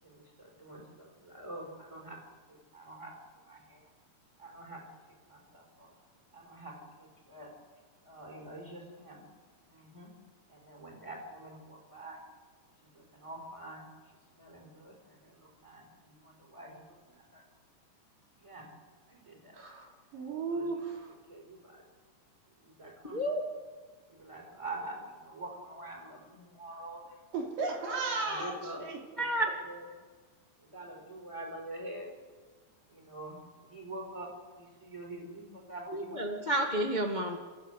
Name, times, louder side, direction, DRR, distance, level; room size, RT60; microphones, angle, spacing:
voice 1, 0.0-2.2 2.5-3.9 4.4-4.8 5.3-5.9 6.3-7.5 8.0-9.2 9.7-10.1 10.5-12.2 12.9-13.9 14.3-17.4 18.4-18.7 19.1-19.6 20.5-20.7 21.3-21.8 22.5-23.2 24.1-27.2 28.3-28.8 29.2-29.8 30.6-32.1 32.9-36.5, right 2 dB, 10° right, 0 dB, 4.9 m, -46 dB
voice 2, 19.5-21.1 27.3-29.0, right 3 dB, 75° right, 1 dB, 4.7 m, -35 dB
voice 3, 23.0-23.5 29.2-29.5 35.9-37.4, right 1 dB, 40° left, 2 dB, 0.6 m, -30 dB
29.5 x 14.5 x 8.1 m, 1.5 s
omnidirectional pair, 3.9 m